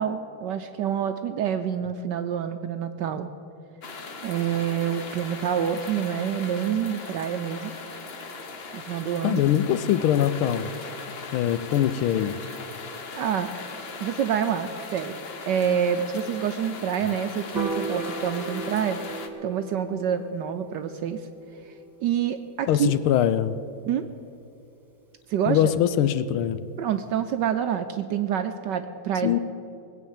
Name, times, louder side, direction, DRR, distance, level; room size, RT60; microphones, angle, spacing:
voice 1, 0.0-3.3 4.2-7.7 8.7-9.4 13.2-13.5 14.0-15.2 15.5-19.0 19.4-21.3 21.6-21.7 22.0-22.9 23.9-24.1 25.3-25.7 26.8-29.4, right 8 dB, 75° right, 9 dB, 1.0 m, -27 dB
sound 1, 3.8-19.3, left 4 dB, 50° left, 0.7 m, -39 dB
voice 2, 9.2-10.7 11.3-12.4 22.7-23.6 25.5-26.6 29.2-29.4, left 11 dB, 80° left, 14 dB, 1.5 m, -22 dB
Piano, 17.5-23.9, right 3 dB, 10° right, 1.4 m, -37 dB
19.5 x 8.4 x 7.2 m, 2.7 s
omnidirectional pair, 2.3 m